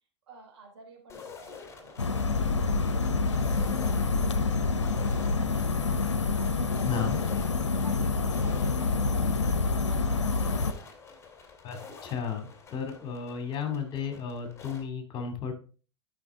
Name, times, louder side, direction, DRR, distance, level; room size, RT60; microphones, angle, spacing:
voice 1, 0.3-5.9 6.4-10.6, right 4 dB, 70° right, 0 dB, 3.6 m, -51 dB
sound 1, 1.1-14.8, left 5 dB, 20° left, 2.5 m, -48 dB
sound 2, 2.0-10.7, left 4 dB, 80° left, 0.8 m, -27 dB
voice 2, 6.8-7.2 11.6-15.5, left 7 dB, 35° left, 5 dB, 2.4 m, -33 dB
12.0 x 5.9 x 3.6 m, 0.38 s
figure-of-eight pair, 85°, 15 cm